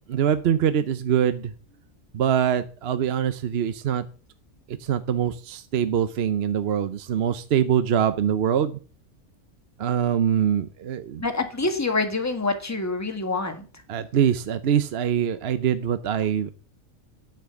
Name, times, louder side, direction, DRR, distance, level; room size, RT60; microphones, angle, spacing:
voice 1, 0.1-1.5 2.1-4.0 4.7-8.8 9.8-11.2 13.9-16.5, right 9 dB, 60° right, 11 dB, 0.8 m, -23 dB
voice 2, 11.2-13.6, left 3 dB, 10° left, 6 dB, 1.5 m, -26 dB
10.0 x 5.8 x 7.0 m, 0.37 s
omnidirectional pair, 1.4 m